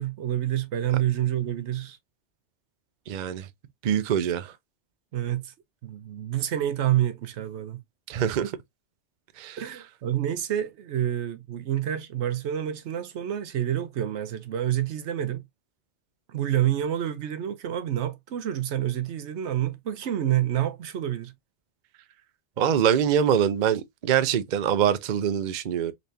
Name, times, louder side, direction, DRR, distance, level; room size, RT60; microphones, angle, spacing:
voice 1, 0.0-2.0 5.1-5.5 5.8-7.8 9.6-15.4 16.3-21.3, right 11 dB, 75° right, 0.9 m, -28 dB
voice 2, 3.1-3.5 3.8-4.5 8.1-8.5 9.4-9.6 22.6-25.9, right 9 dB, 50° right, 0.6 m, -24 dB
4.0 x 3.2 x 2.7 m
omnidirectional pair, 1.2 m